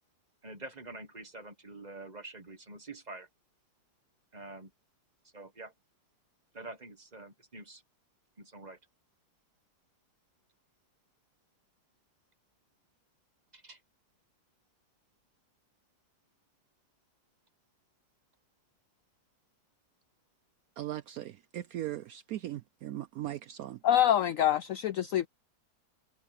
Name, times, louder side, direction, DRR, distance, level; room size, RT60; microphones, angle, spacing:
voice 1, 0.4-3.3 4.3-4.7 5.2-5.7 6.5-7.8 8.4-8.8 13.5-13.8, right 2 dB, 25° right, 1.6 m, -46 dB
voice 2, 20.8-23.8, right 13 dB, 70° right, 0.9 m, -39 dB
voice 3, 23.8-25.3, left 11 dB, 70° left, 0.8 m, -25 dB
omnidirectional pair, 1.8 m